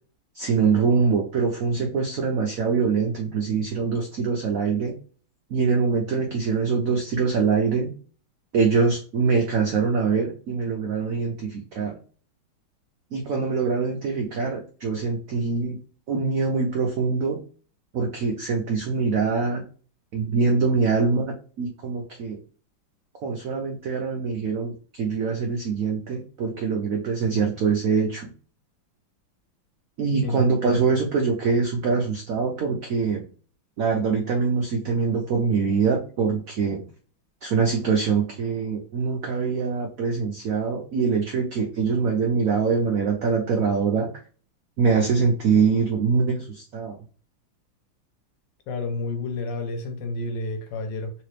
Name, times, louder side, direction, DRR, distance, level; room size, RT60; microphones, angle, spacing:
voice 1, 0.3-5.0 5.5-7.9 8.5-12.0 13.1-15.8 16.1-17.4 17.9-19.6 20.1-22.4 23.2-28.3 30.0-33.2 33.8-36.8 37.4-44.1 44.8-47.0, right 5 dB, 85° right, 0.7 m, -24 dB
voice 2, 30.2-31.0 48.7-51.1, left 2 dB, 70° left, 1.3 m, -30 dB
3.3 x 2.9 x 3.1 m
omnidirectional pair, 2.2 m